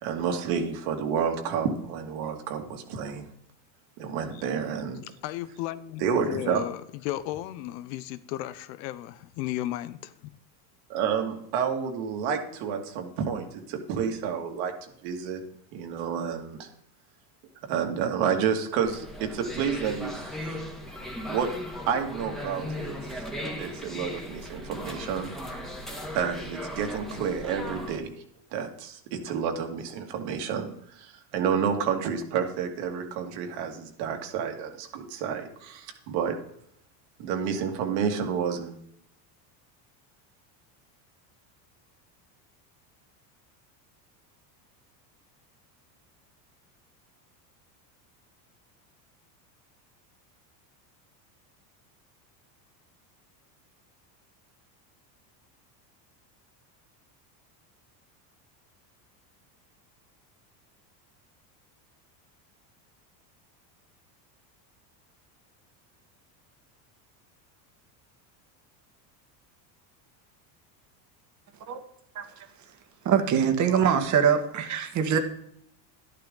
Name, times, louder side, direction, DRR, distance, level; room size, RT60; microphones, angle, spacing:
voice 1, 0.0-3.3 4.0-5.0 6.0-6.6 10.9-14.7 15.0-15.4 15.7-16.7 17.7-20.2 21.3-21.5 21.9-22.9 23.6-25.3 26.1-28.1 28.5-36.3 37.2-38.7, right 7 dB, 65° right, 2.4 m, -30 dB
voice 2, 5.2-10.3, left 14 dB, 80° left, 1.0 m, -35 dB
sound 1, 18.8-28.0, equal, ahead, 1.7 m, -37 dB
voice 3, 72.2-72.5 73.0-75.2, right 8 dB, 35° right, 1.7 m, -23 dB
11.5 x 11.5 x 3.9 m
supercardioid pair, 140°, 49 cm